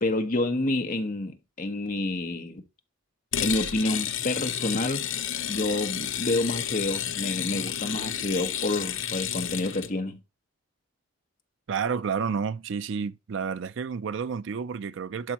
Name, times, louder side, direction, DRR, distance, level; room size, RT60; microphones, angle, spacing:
voice 1, 0.0-2.6 3.4-5.0 5.5-10.2, left 2 dB, 40° left, 1.0 m, -28 dB
sound 1, 3.3-9.9, left 10 dB, 65° left, 0.6 m, -31 dB
voice 2, 11.7-15.3, right 6 dB, 60° right, 0.4 m, -30 dB
11.5 x 4.1 x 2.9 m
head